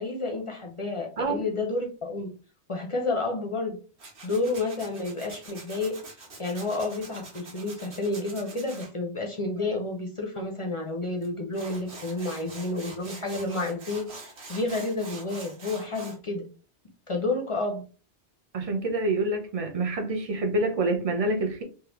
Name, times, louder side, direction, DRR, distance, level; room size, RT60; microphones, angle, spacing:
voice 1, 0.0-2.3 2.7-3.8 4.2-6.0 6.4-16.4 17.1-17.8, left 2 dB, 40° left, 0.5 m, -30 dB
Tools, 4.0-8.9 11.2-11.3 11.5-16.2, right 3 dB, 80° right, 1.4 m, -44 dB
voice 2, 18.5-21.6, right 2 dB, 40° right, 0.6 m, -27 dB
3.3 x 2.2 x 2.9 m
omnidirectional pair, 1.1 m